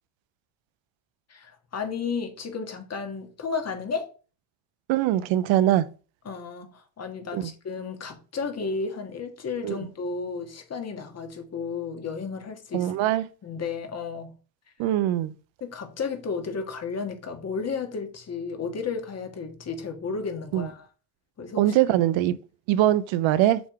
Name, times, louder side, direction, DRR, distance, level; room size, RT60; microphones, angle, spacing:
voice 1, 1.3-4.1 6.2-12.9 13.4-14.3 15.6-20.9 21.4-21.8, left 5 dB, 35° left, 1.6 m, -33 dB
voice 2, 4.9-5.8 7.3-7.4 9.6-9.8 12.7-13.3 14.8-15.3 20.5-20.7 21.6-22.3 22.7-23.6, right 13 dB, 80° right, 0.7 m, -22 dB
7.1 x 3.7 x 4.7 m
cardioid pair, 130°, 46 cm